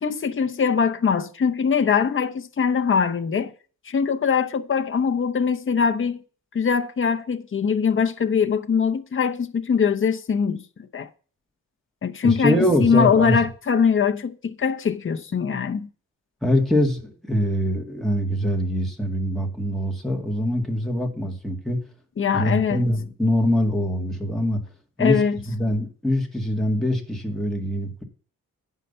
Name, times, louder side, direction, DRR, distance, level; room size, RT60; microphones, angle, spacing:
voice 1, 0.0-3.5 3.8-6.2 6.5-10.6 10.9-11.1 12.0-15.9 22.2-22.8 25.0-25.4, left 6 dB, 35° left, 0.7 m, -22 dB
voice 2, 12.2-13.4 16.4-21.8 22.3-24.6 25.0-25.2 25.5-28.0, equal, ahead, 1.9 m, -23 dB
9.1 x 5.6 x 6.7 m
wide cardioid pair, 135°, 34 cm